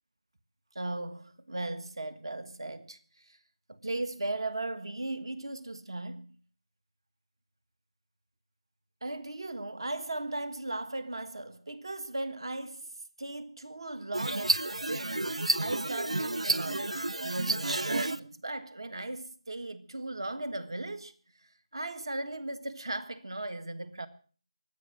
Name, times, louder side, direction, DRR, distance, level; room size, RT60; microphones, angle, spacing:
voice 1, 0.7-3.4 3.7-6.3 9.0-12.9 13.2-24.1, right 2 dB, 50° right, 1.5 m, -37 dB
sound 1, 14.1-18.2, right 2 dB, 75° right, 0.8 m, -30 dB
23.0 x 8.8 x 6.4 m
figure-of-eight pair, 180°, 3 cm